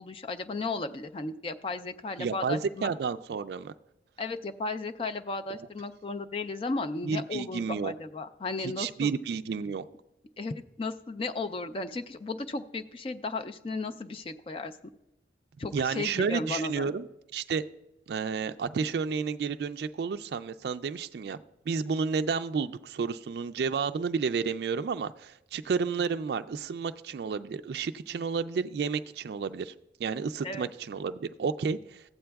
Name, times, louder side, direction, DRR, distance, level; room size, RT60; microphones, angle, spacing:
voice 1, 0.0-2.9 4.2-9.1 10.4-14.8 15.6-16.9 30.4-30.7, left 3 dB, 30° left, 9 dB, 0.4 m, -35 dB
voice 2, 2.2-3.7 7.0-7.9 8.6-9.8 15.7-17.1 17.3-17.6 18.1-21.4 21.7-29.7 30.0-32.0, right 5 dB, 65° right, 10 dB, 0.3 m, -31 dB
15.0 x 8.6 x 2.3 m, 0.93 s
head